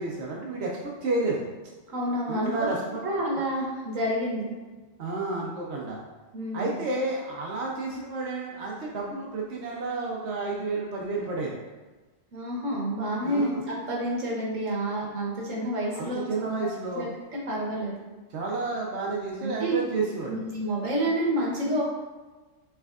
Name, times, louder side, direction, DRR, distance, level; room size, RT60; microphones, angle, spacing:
voice 1, 0.0-1.4 2.3-3.1 3.4-3.5 5.0-6.0 6.5-11.6 13.2-13.6 15.9-17.1 18.3-20.4, right 3 dB, 60° right, -3 dB, 0.9 m, -31 dB
voice 2, 1.9-2.7 3.0-4.5 6.3-6.7 12.3-16.3 16.9-17.9 19.4-19.8 20.3-21.8, right 1 dB, 80° right, -3 dB, 1.4 m, -29 dB
5.9 x 3.3 x 2.4 m, 1.3 s
omnidirectional pair, 1.3 m